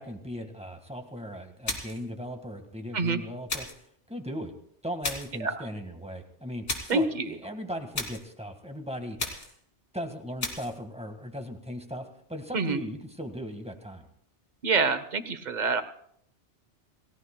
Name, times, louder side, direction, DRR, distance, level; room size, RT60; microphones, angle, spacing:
voice 1, 0.0-3.7 4.1-4.5 4.8-9.2 9.9-14.0, equal, 5° right, 4 dB, 1.5 m, -38 dB
sound 1, 1.7-2.1 3.5-3.9 5.0-5.4 6.7-7.0 7.9-8.3 9.2-9.6 10.4-10.8, left 2 dB, 55° left, 2.6 m, -34 dB
voice 2, 6.9-7.3 12.5-12.8 14.6-15.8, right 4 dB, 45° right, 10 dB, 1.0 m, -26 dB
28.5 x 16.5 x 2.2 m, 0.68 s
omnidirectional pair, 1.2 m